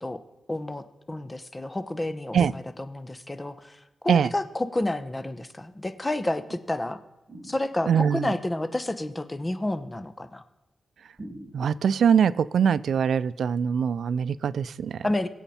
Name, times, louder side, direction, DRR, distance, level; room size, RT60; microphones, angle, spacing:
voice 1, 0.5-3.8 4.0-7.0 7.4-10.4 15.0-15.3, left 1 dB, 20° left, 11 dB, 0.8 m, -30 dB
sound 1, 7.3-8.1 11.2-12.1, right 1 dB, 15° right, 3.9 m, -44 dB
voice 2, 7.9-8.3 11.5-15.1, right 7 dB, 80° right, 18 dB, 0.3 m, -23 dB
22.5 x 8.0 x 4.3 m, 1.0 s
wide cardioid pair, 115°, 0 cm